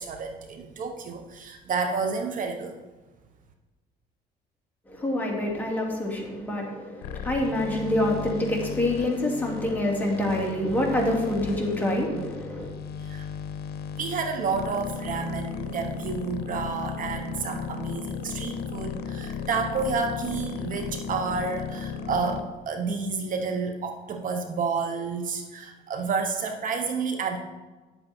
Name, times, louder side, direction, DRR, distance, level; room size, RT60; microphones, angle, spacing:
voice 1, 0.0-2.8 13.0-13.3 14.0-27.4, right 5 dB, 50° right, 6 dB, 1.0 m, -30 dB
voice 2, 4.9-12.7, left 1 dB, 10° left, -2 dB, 2.6 m, -26 dB
sound 1, 7.0-22.4, left 6 dB, 75° left, 0.9 m, -36 dB
10.5 x 8.0 x 4.3 m, 1.2 s
cardioid pair, 110°, 17 cm